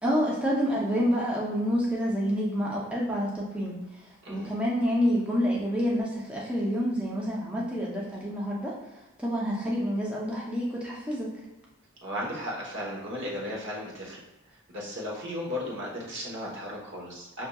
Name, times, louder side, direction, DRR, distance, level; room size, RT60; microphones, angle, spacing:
voice 1, 0.0-3.8 4.3-8.7 9.2-11.3, equal, 5° right, -5 dB, 0.6 m, -28 dB
voice 2, 12.0-14.2 14.5-17.5, left 1 dB, 55° right, -3 dB, 1.1 m, -35 dB
6.3 x 2.6 x 2.3 m, 1.1 s
head